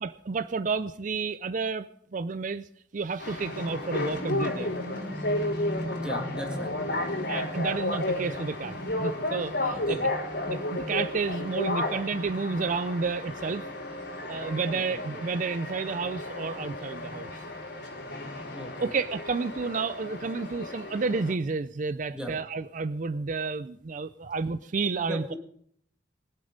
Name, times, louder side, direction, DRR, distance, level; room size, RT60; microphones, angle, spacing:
voice 1, 0.0-2.7 2.9-4.7 7.3-10.0 10.5-13.6 14.3-17.4 18.8-25.3, right 4 dB, 45° right, 13 dB, 0.4 m, -31 dB
sound 1, 3.2-21.3, left 1 dB, 65° left, 4.1 m, -33 dB
voice 2, 6.0-6.7 9.7-10.1 14.7-14.8 15.1-15.2 18.5-19.0 22.1-22.3 25.1-25.4, equal, 5° right, 2 dB, 1.9 m, -38 dB
21.5 x 8.0 x 5.2 m, 0.65 s
head